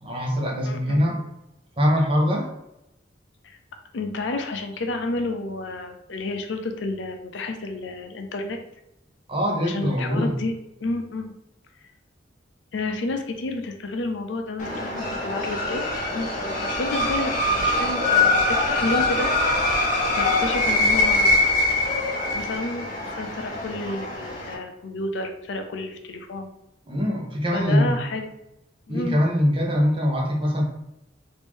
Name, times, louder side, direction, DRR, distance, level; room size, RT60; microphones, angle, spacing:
voice 1, 0.0-1.2 1.8-2.5 9.3-10.4 26.9-27.9 28.9-30.6, equal, 30° right, -1 dB, 0.7 m, -22 dB
voice 2, 0.6-1.1 3.4-3.6 3.9-8.6 9.7-10.5 10.8-11.3 12.7-19.3 20.1-21.6 22.3-26.5 27.5-28.3 28.9-29.2, left 2 dB, 70° left, 5 dB, 0.5 m, -30 dB
sound 1, 14.6-24.5, left 2 dB, 40° left, 0.8 m, -23 dB
3.1 x 2.6 x 3.5 m, 0.86 s
head